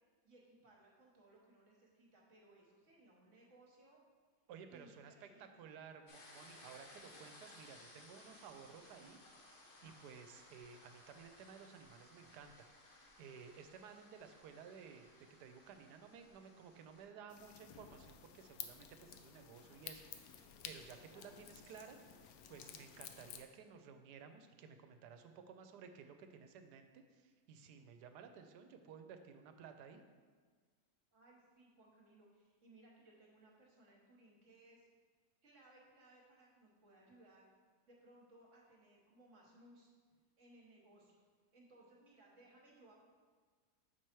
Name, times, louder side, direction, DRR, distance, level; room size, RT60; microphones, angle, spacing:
voice 1, 0.2-4.0 4.7-5.6 21.1-21.3 31.1-34.9 35.4-37.5 37.8-39.9 40.4-41.2 41.5-42.9, right 1 dB, 50° right, -2 dB, 1.4 m, -64 dB
voice 2, 4.5-9.5 9.8-12.7 13.2-15.1 15.4-22.0 22.5-30.0, right 6 dB, 85° right, 7 dB, 1.2 m, -56 dB
sound 1, 6.1-17.1, left 2 dB, 45° left, 0.8 m, -61 dB
sound 2, 17.3-23.4, left 8 dB, 70° left, 1.0 m, -53 dB
6.6 x 4.7 x 4.4 m, 1.5 s
omnidirectional pair, 1.7 m